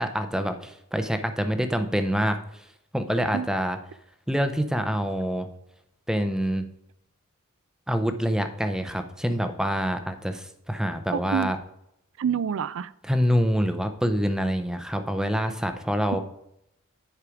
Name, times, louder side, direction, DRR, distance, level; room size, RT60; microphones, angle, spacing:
voice 1, 0.0-2.4 2.9-3.8 4.3-5.5 6.1-6.7 7.9-11.6 13.0-16.2, equal, 5° right, 0.5 m, -26 dB
voice 2, 11.1-11.5 12.2-12.9, right 7 dB, 60° right, 0.4 m, -27 dB
9.9 x 4.8 x 4.9 m
head